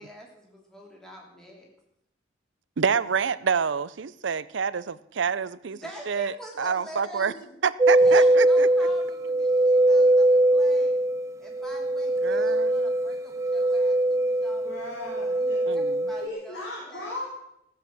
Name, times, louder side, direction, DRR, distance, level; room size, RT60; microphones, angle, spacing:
voice 1, 0.0-1.7 5.7-7.6 8.0-11.0 11.4-14.9 15.4-17.1, equal, 5° left, -1 dB, 3.0 m, -45 dB
voice 2, 2.8-5.8 6.1-7.3 7.6-8.7 12.2-12.9 15.7-16.1, right 6 dB, 70° right, 18 dB, 0.5 m, -27 dB
sound 1, 7.8-16.3, right 1 dB, 15° right, 0.5 m, -21 dB
voice 3, 14.5-15.6 16.1-17.3, left 1 dB, 60° left, -5 dB, 4.4 m, -37 dB
15.5 x 7.8 x 7.6 m, 0.81 s
head